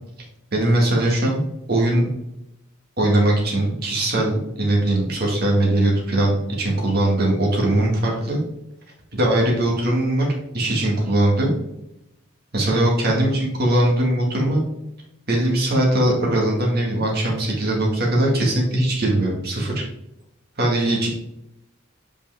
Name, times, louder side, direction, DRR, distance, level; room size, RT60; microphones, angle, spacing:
voice 1, 0.5-2.1 3.0-8.4 9.1-10.3 10.5-11.5 12.5-14.6 15.3-19.8 20.6-21.1, right 1 dB, 50° right, -2 dB, 2.0 m, -20 dB
5.4 x 5.1 x 3.5 m, 0.84 s
head